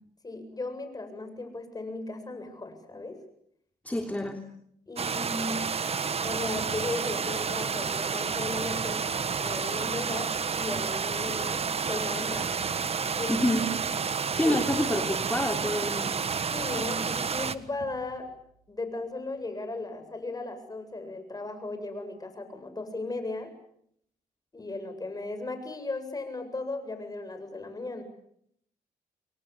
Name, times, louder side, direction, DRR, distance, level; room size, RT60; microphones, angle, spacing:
voice 1, 0.2-3.2 4.9-5.8 6.2-9.1 9.4-12.5 13.2-13.3 14.4-14.7 16.5-18.3 18.7-23.5 24.5-28.0, left 2 dB, 25° left, 8 dB, 7.8 m, -36 dB
voice 2, 3.8-4.4 13.3-13.8 14.3-16.2, left 1 dB, 10° left, 4 dB, 3.2 m, -28 dB
sound 1, 5.0-17.5, right 6 dB, 40° right, 1.5 m, -30 dB
sound 2, 6.3-18.7 19.2-19.3, right 5 dB, 70° right, 6.9 m, -48 dB
30.0 x 23.0 x 8.5 m, 0.72 s
cardioid pair, 90°, 15 cm